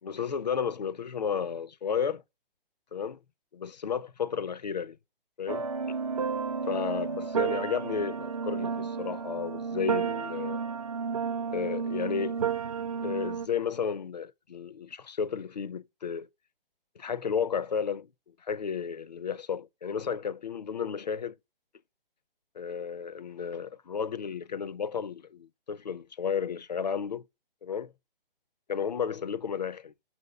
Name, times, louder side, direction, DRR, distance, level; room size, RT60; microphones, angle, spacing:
voice 1, 0.0-2.2 2.9-3.2 3.5-5.0 5.4-6.0 6.7-10.6 11.5-12.4 13.0-16.3 17.0-18.1 18.4-21.4 22.5-27.2 27.6-27.9 28.7-29.9, left 7 dB, 45° left, 0.5 m, -33 dB
sound 1, 5.5-13.5, right 6 dB, 40° right, 0.4 m, -32 dB
6.1 x 4.2 x 4.1 m
figure-of-eight pair, 140°, 29 cm